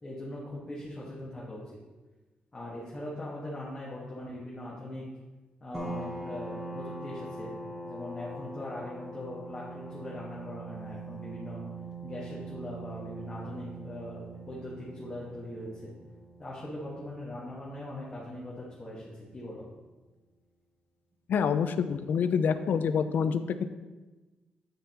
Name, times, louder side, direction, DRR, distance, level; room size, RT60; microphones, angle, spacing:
voice 1, 0.0-1.8 2.5-5.0 5.6-7.5 7.8-11.6 12.0-15.9 16.4-19.7, left 1 dB, 25° left, -6 dB, 1.5 m, -41 dB
sound 1, 5.7-19.0, right 2 dB, 15° right, 1.0 m, -43 dB
voice 2, 21.3-23.6, left 6 dB, 70° left, 11 dB, 0.5 m, -27 dB
9.0 x 6.9 x 2.9 m, 1.2 s
wide cardioid pair, 145°, 3 cm